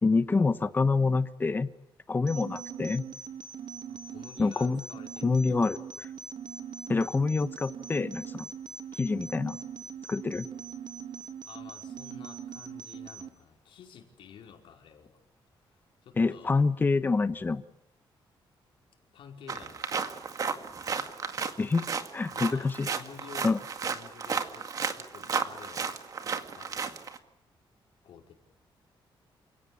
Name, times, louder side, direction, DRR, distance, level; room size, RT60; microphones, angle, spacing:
voice 1, 0.0-1.7 2.1-3.0 4.4-4.8 5.2-5.8 6.9-8.5 9.0-9.6 10.1-10.5 16.2-17.6 21.6-21.8 22.1-22.9 23.4-23.6, left 4 dB, 20° left, 12 dB, 1.2 m, -26 dB
sound 1, 2.3-13.3, right 7 dB, 55° right, 2.6 m, -42 dB
voice 2, 3.9-5.6 5.9-6.1 11.4-15.2 15.7-16.5 19.1-19.9 22.3-23.6 23.9-25.9 26.5-27.0 28.0-28.3, left 8 dB, 80° left, 2 dB, 5.1 m, -51 dB
sound 2, 19.5-27.2, right 5 dB, 40° right, 2.1 m, -33 dB
29.0 x 17.5 x 8.6 m, 0.80 s
cardioid pair, 150°, 9 cm